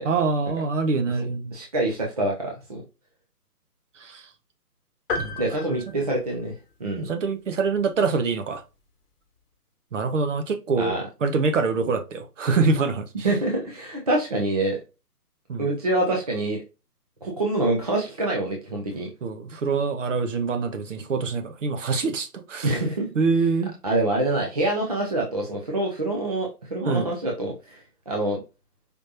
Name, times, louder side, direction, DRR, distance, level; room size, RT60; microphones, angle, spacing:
voice 1, 0.0-1.6 4.0-4.3 5.1-5.5 7.0-8.6 9.9-10.9 11.2-13.1 15.5-15.7 19.2-22.7 23.1-23.7 26.8-27.1, right 4 dB, 50° right, 0.9 m, -25 dB
voice 2, 1.5-2.8 5.4-6.5 6.8-7.1 10.8-11.0 13.2-14.8 15.6-16.6 17.2-19.1 22.6-23.1 23.8-28.4, right 2 dB, 25° right, 0.6 m, -26 dB
sound 1, 5.1-6.9, left 3 dB, 35° left, 1.4 m, -33 dB
5.1 x 3.2 x 2.5 m
figure-of-eight pair, 150°, 47 cm